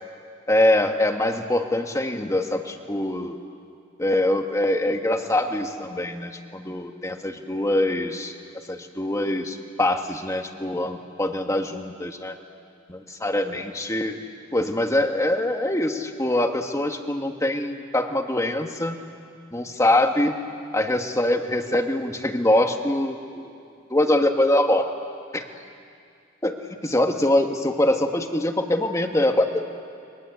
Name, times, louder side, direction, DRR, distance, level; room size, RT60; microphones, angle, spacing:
voice 1, 0.5-3.4 4.0-8.3 8.7-12.3 12.9-14.2 14.5-19.0 19.5-20.4 20.7-23.5 23.9-24.9 25.3-25.4 26.4-29.6, left 1 dB, 15° left, 5 dB, 1.6 m, -23 dB
30.0 x 22.0 x 8.2 m, 2.3 s
head